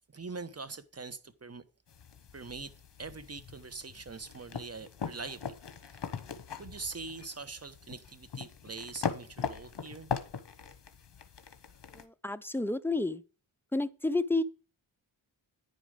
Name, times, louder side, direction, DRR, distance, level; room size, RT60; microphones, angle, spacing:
voice 1, 0.1-1.6 2.3-2.7 3.0-5.5 6.6-10.1, right 4 dB, 30° right, 1.0 m, -43 dB
sound 1, 1.9-12.0, left 6 dB, 55° left, 1.2 m, -41 dB
voice 2, 11.9-13.2 13.7-14.4, left 2 dB, 5° left, 0.5 m, -30 dB
10.0 x 5.0 x 5.0 m
cardioid pair, 50°, 49 cm